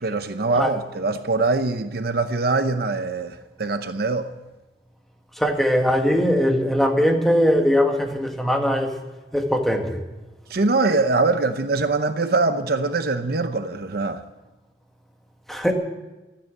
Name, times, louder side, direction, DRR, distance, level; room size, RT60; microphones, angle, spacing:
voice 1, 0.0-4.3 10.5-14.2, right 3 dB, 60° right, 0.8 m, -23 dB
voice 2, 5.4-8.9 9.3-10.0 15.5-15.7, equal, ahead, 1.7 m, -20 dB
13.5 x 10.0 x 8.9 m
head